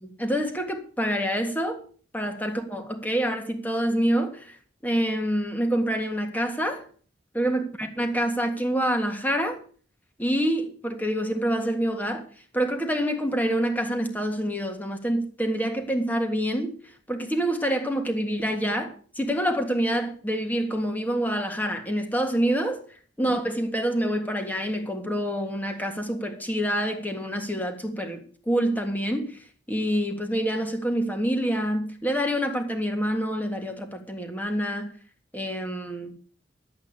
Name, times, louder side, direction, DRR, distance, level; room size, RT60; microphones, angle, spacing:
voice 1, 0.0-1.8 2.1-4.6 4.8-6.8 7.3-9.6 10.2-12.2 12.5-16.7 17.1-22.8 23.2-29.4 29.7-34.9 35.3-36.1, equal, 10° left, 1.8 m, -27 dB
11.5 x 8.2 x 6.8 m
head